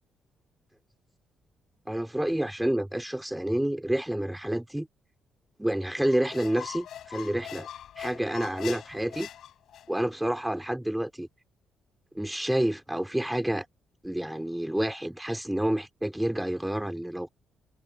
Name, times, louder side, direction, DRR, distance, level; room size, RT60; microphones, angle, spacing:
voice 1, 1.9-4.9 5.6-7.7 8.0-9.3 9.9-11.3 12.1-13.6 14.0-17.3, right 1 dB, 5° right, 3.1 m, -29 dB
Squeak, 6.0-10.1, left 10 dB, 70° left, 4.7 m, -42 dB
cardioid pair, 90°, 0 cm